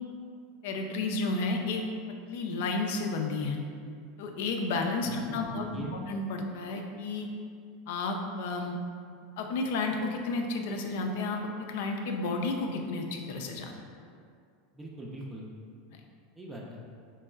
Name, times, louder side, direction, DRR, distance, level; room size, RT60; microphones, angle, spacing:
voice 1, 0.6-1.8 2.3-3.6 4.2-7.3 7.9-8.8 9.4-13.7, left 3 dB, 65° left, 3 dB, 0.4 m, -32 dB
voice 2, 5.0-6.0 14.7-15.5 16.4-16.8, right 1 dB, 15° right, -3 dB, 0.6 m, -41 dB
4.3 x 3.1 x 2.3 m, 2.3 s
hypercardioid pair, 85°, 0 cm